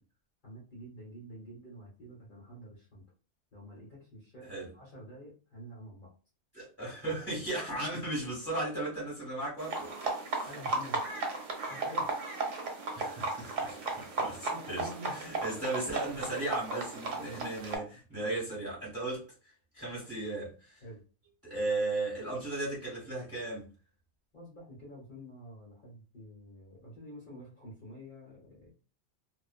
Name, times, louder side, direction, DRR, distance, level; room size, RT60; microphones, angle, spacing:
voice 1, 0.4-3.0 3.5-6.1 10.5-11.0 11.7-12.1 14.4-15.1 17.2-17.4 20.8-21.0 24.3-28.7, equal, 45° left, 1.2 m, -48 dB
voice 2, 6.5-10.5 12.9-19.2 19.7-20.8 21.4-23.7, right 2 dB, 10° right, 1.5 m, -36 dB
sound 1, 9.6-17.8, right 3 dB, 90° right, 1.0 m, -35 dB
2.4 x 2.4 x 2.4 m
omnidirectional pair, 1.2 m